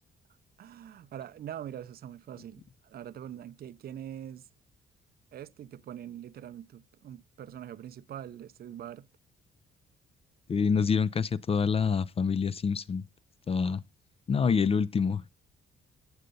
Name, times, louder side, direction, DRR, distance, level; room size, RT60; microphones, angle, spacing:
voice 1, 0.6-4.5 5.3-9.1, right 10 dB, 50° right, 0.5 m, -43 dB
voice 2, 10.5-13.0 13.5-13.8 14.3-15.3, left 6 dB, 30° left, 0.4 m, -26 dB
8.0 x 6.6 x 5.3 m
cardioid pair, 90°, 20 cm